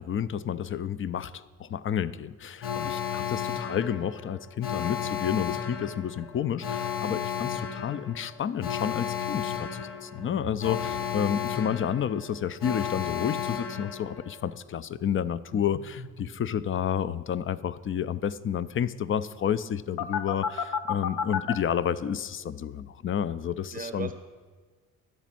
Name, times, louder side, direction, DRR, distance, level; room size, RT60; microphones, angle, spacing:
voice 1, 0.0-24.1, left 8 dB, 35° left, 16 dB, 0.4 m, -30 dB
Alarm, 2.6-14.5 20.0-21.5, left 8 dB, 65° left, 0.8 m, -33 dB
voice 2, 3.1-3.4 10.8-11.1 23.7-24.1, right 4 dB, 25° right, 6 dB, 0.7 m, -39 dB
sound 1, 10.2-11.1 15.5-16.4, left 1 dB, 90° left, 1.0 m, -43 dB
11.0 x 4.1 x 7.4 m, 1.4 s
supercardioid pair, 55°, 35 cm